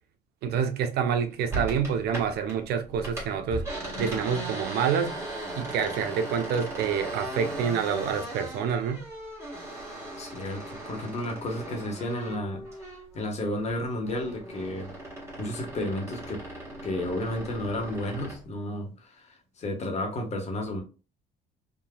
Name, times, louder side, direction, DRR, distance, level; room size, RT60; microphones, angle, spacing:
voice 1, 0.4-3.6 4.0-5.2 5.6-9.0, right 7 dB, 75° right, 0.6 m, -27 dB
sound 1, 1.5-2.6 2.9-13.2 13.6-18.4, right 1 dB, 15° right, 1.4 m, -38 dB
voice 2, 10.2-14.9 15.4-16.4 16.8-20.8, left 1 dB, 40° left, 1.3 m, -32 dB
3.8 x 2.5 x 2.2 m
cardioid pair, 110°, 17 cm